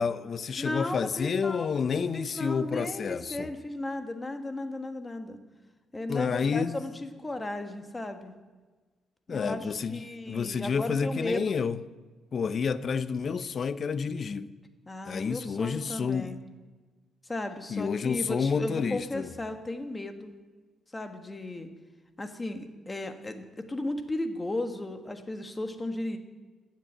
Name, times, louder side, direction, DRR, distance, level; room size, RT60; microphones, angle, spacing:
voice 1, 0.0-3.5 6.1-6.8 9.3-10.0 10.3-11.8 12.3-14.5 15.1-16.3 17.7-19.3, left 6 dB, 50° left, 15 dB, 0.6 m, -29 dB
voice 2, 0.6-5.4 5.9-8.3 9.3-11.5 14.9-16.4 17.2-20.3 20.9-21.7 22.2-26.2, left 2 dB, 20° left, 7 dB, 1.5 m, -35 dB
15.5 x 7.5 x 7.8 m, 1.3 s
cardioid pair, 90°, 0 cm